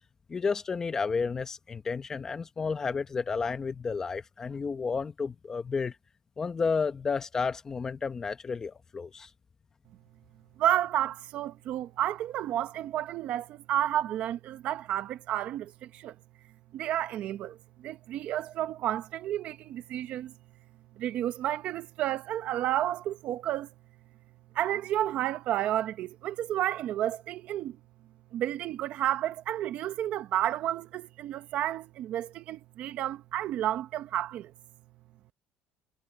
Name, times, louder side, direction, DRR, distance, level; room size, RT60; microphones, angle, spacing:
voice 1, 0.3-5.9 6.4-9.3, left 5 dB, 20° left, 1.0 m, -31 dB
voice 2, 10.6-16.1 16.7-20.3 21.0-23.7 24.5-27.8 28.3-34.5, right 12 dB, 50° right, 0.7 m, -31 dB
cardioid pair, 165°, 3 cm